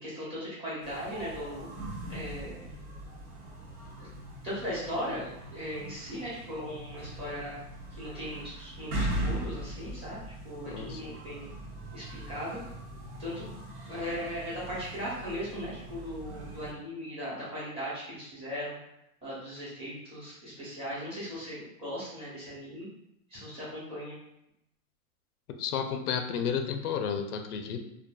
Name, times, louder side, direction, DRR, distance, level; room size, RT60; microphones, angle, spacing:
voice 1, 0.0-1.7 2.1-2.7 4.4-7.6 7.9-11.5 11.9-12.6 13.2-13.5 13.9-18.8 19.2-22.9 23.3-24.2, equal, 15° right, -10 dB, 0.8 m, -38 dB
sound 1, 0.8-16.7, right 1 dB, 80° right, 1.0 m, -40 dB
voice 2, 10.7-11.1 25.6-27.8, left 7 dB, 90° left, 6 dB, 0.5 m, -32 dB
2.6 x 2.4 x 2.3 m, 0.82 s
hypercardioid pair, 150°, 44 cm